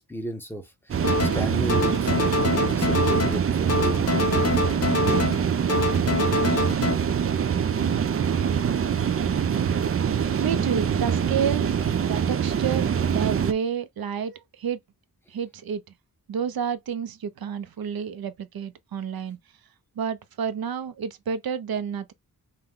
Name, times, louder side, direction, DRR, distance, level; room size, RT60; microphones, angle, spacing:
voice 1, 0.0-4.1, equal, 5° left, 0.9 m, -35 dB
sound 1, 0.9-13.5, right 7 dB, 40° right, 0.4 m, -24 dB
sound 2, 1.0-1.4 1.7-3.4 3.7-5.4 5.7-6.9, left 3 dB, 45° left, 0.6 m, -25 dB
sound 3, 2.3-7.2, left 2 dB, 70° left, 1.9 m, -43 dB
voice 2, 10.4-11.7 12.0-14.8 15.3-15.8 16.3-19.4 20.0-22.1, right 7 dB, 80° right, 0.7 m, -30 dB
5.7 x 2.2 x 3.6 m
wide cardioid pair, 170°, 36 cm